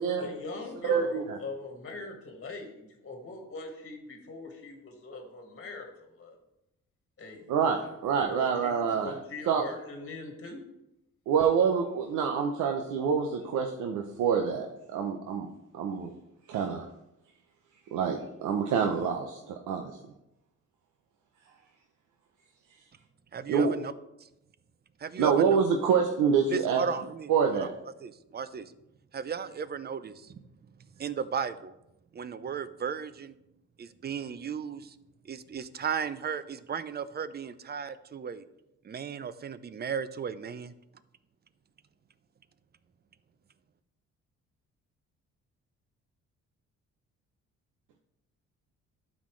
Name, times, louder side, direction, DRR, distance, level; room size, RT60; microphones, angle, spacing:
voice 1, 0.2-6.4 7.2-7.5 8.3-8.7 9.0-10.6, left 3 dB, 40° left, 2 dB, 1.6 m, -41 dB
voice 2, 0.9-1.4 7.5-9.2 9.5-9.6 11.3-15.5 15.7-16.1 16.5-16.9 17.9-19.9 23.5-23.8 25.2-26.8 27.3-27.7, right 6 dB, 90° right, 3 dB, 0.7 m, -26 dB
voice 3, 23.3-23.9 24.2-24.3 25.0-25.6 26.5-27.7 28.0-28.7 29.1-30.4 31.0-31.7 32.1-33.3 33.8-35.0 35.2-38.4 38.8-40.7, right 6 dB, 35° right, 14 dB, 0.5 m, -35 dB
12.0 x 4.2 x 3.2 m, 0.88 s
cardioid pair, 90°, 30 cm